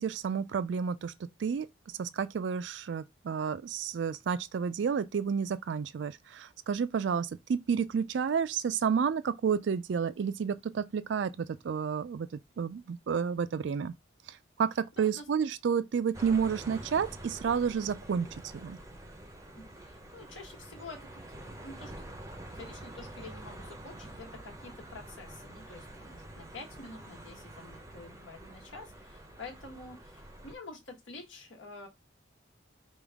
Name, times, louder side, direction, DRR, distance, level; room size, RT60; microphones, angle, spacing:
voice 1, 0.0-1.7 2.0-13.9 14.3-18.3 18.5-18.8, right 6 dB, 65° right, 0.3 m, -31 dB
voice 2, 15.0-15.3 19.5-22.0 22.5-31.9, left 3 dB, 75° left, 1.5 m, -48 dB
sound 1, 16.1-30.5, right 1 dB, 15° right, 0.6 m, -47 dB
5.1 x 2.4 x 3.4 m
head